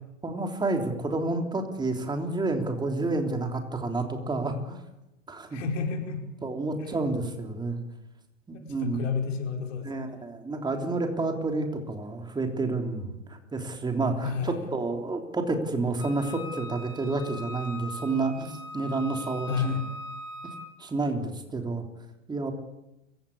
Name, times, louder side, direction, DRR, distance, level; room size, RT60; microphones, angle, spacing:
voice 1, 0.2-4.8 5.3-5.6 6.4-7.8 8.5-9.0 9.8-19.7 20.8-21.9 22.3-22.5, right 3 dB, 10° right, 4 dB, 3.4 m, -30 dB
voice 2, 5.5-6.2 6.8-6.9 8.6-10.2 14.2-14.7 19.5-19.9, left 6 dB, 70° left, 3 dB, 5.2 m, -31 dB
Wind instrument woodwind instrument, 16.0-20.7, left 1 dB, 90° left, 5.0 m, -41 dB
27.5 x 16.0 x 8.7 m, 0.93 s
hypercardioid pair, 125°, 38 cm